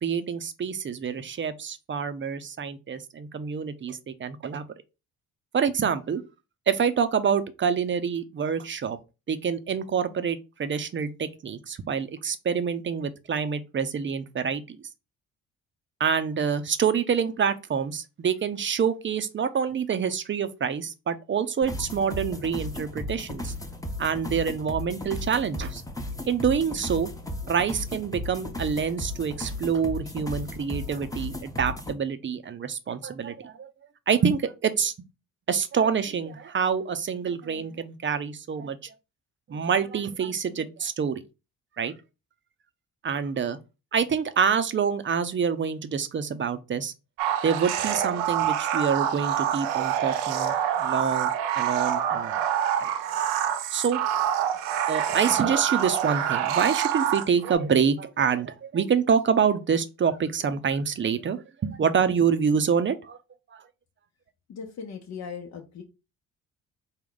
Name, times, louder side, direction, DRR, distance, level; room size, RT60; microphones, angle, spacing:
voice 1, 0.0-4.6 5.5-6.2 6.7-9.0 9.3-14.8 16.0-23.5 24.0-25.8 26.3-27.1 27.5-33.7 34.1-34.9 35.5-38.9 39.5-41.2 41.8-41.9 43.0-43.6 43.9-46.9 47.4-52.4 52.8-52.9 53.7-54.0 54.9-63.2 63.5-63.6, right 6 dB, 35° right, 0.6 m, -26 dB
sound 1, 21.6-31.9, left 1 dB, 10° left, 0.9 m, -35 dB
sound 2, 47.2-57.5, right 10 dB, 90° right, 0.5 m, -26 dB
voice 2, 64.5-65.8, left 6 dB, 50° left, 0.8 m, -38 dB
3.6 x 2.2 x 3.8 m
hypercardioid pair, 50°, 34 cm